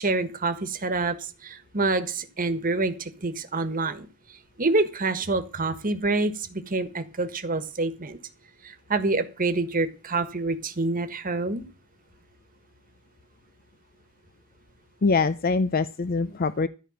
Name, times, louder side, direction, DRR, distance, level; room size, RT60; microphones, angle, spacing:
voice 1, 0.0-4.1 4.6-8.2 8.6-11.6, right 3 dB, 40° right, 9 dB, 1.5 m, -27 dB
voice 2, 15.0-16.7, left 4 dB, 45° left, 13 dB, 0.5 m, -23 dB
13.5 x 5.1 x 8.8 m, 0.33 s
head